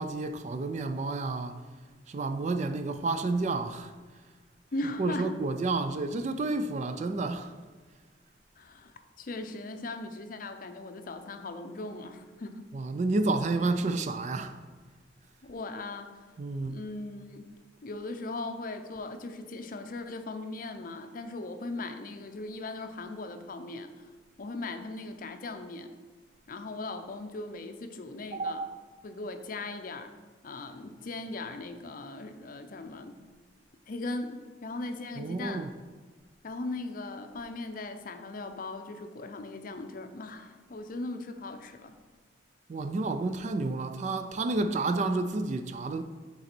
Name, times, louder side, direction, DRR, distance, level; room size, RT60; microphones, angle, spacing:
voice 1, 0.0-1.6 2.1-3.9 5.0-7.6 12.7-14.6 16.4-16.8 28.3-28.7 35.2-35.7 42.7-46.0, right 3 dB, 40° right, 0.3 m, -30 dB
voice 2, 4.7-5.3 8.6-12.7 15.4-16.2 16.7-17.5 17.8-23.9 24.4-25.9 26.5-28.6 29.0-30.1 30.4-33.2 33.9-35.6 36.4-41.9, left 2 dB, 50° left, 0.5 m, -38 dB
6.6 x 4.1 x 4.4 m
head